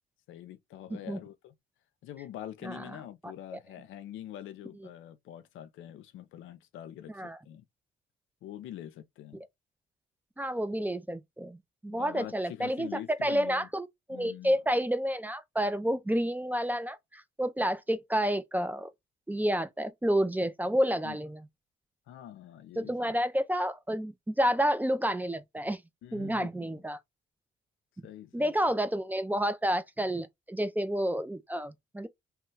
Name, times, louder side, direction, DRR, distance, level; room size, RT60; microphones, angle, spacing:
voice 1, 0.3-1.5 2.0-7.6 8.4-9.4 11.9-13.7 14.1-14.6 21.0-21.2 22.1-22.9 26.0-26.8 28.0-28.5, left 11 dB, 85° left, 0.5 m, -45 dB
voice 2, 7.1-7.4 10.4-12.9 13.2-18.9 19.3-21.4 22.8-25.8 26.1-27.0 28.3-32.1, equal, 10° right, 0.4 m, -30 dB
3.0 x 2.3 x 3.1 m
cardioid pair, 90°, 20 cm